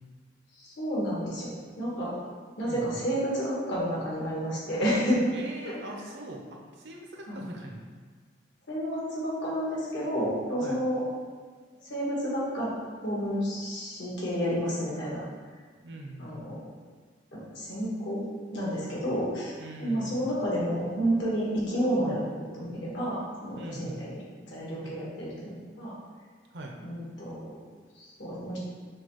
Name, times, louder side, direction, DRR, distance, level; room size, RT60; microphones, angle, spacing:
voice 1, 0.6-1.5 1.8-2.2 2.6-5.2 5.6-5.7 7.3-7.4 8.7-11.0 11.8-12.7 13.0-15.2 16.2-16.6 17.3-18.2 18.5-24.1 24.5-25.9 26.8-27.4 27.9-28.6, equal, 75° left, -6 dB, 1.4 m, -30 dB
voice 2, 2.6-3.0 5.3-7.8 10.6-10.8 15.8-16.3 19.6-20.2 23.6-24.0 24.8-25.0 26.5-26.7, right 1 dB, 70° right, 0 dB, 0.6 m, -42 dB
6.3 x 2.3 x 3.0 m, 1.5 s
head